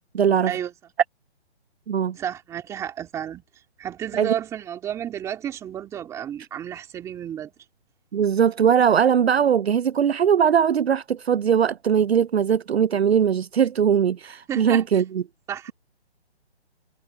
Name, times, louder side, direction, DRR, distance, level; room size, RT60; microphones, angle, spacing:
voice 1, 0.1-0.5 1.9-2.2 4.2-4.3 8.1-15.2, right 8 dB, 65° right, 0.7 m, -20 dB
voice 2, 2.2-3.4 3.8-7.5 14.5-15.0 15.5-15.7, right 10 dB, 10° right, 2.4 m, -32 dB
hypercardioid pair, 160°, 34 cm